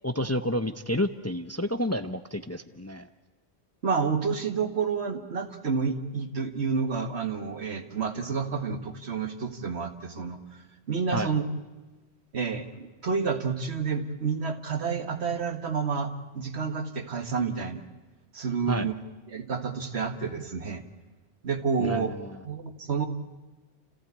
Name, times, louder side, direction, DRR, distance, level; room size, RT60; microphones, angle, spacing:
voice 1, 0.0-3.1 11.1-11.3 18.7-18.9 21.8-22.4, left 1 dB, 15° left, 10 dB, 0.6 m, -30 dB
voice 2, 3.8-10.4 10.9-11.4 12.3-17.8 18.3-18.9 19.3-20.8 21.4-22.1 22.4-23.1, right 5 dB, 75° right, 7 dB, 1.9 m, -29 dB
29.5 x 15.0 x 8.4 m, 1.2 s
omnidirectional pair, 1.1 m